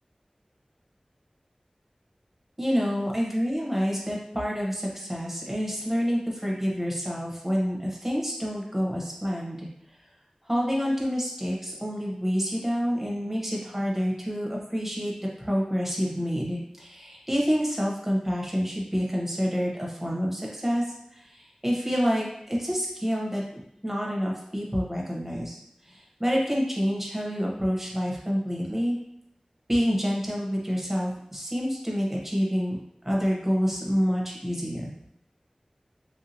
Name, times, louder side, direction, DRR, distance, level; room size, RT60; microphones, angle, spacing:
voice 1, 2.6-9.7 10.5-15.1 15.4-23.4 23.8-25.6 25.8-29.0 29.7-32.8 33.0-34.9, equal, 10° right, -3 dB, 1.0 m, -28 dB
3.2 x 2.7 x 2.8 m, 0.74 s
wide cardioid pair, 45°, 2 cm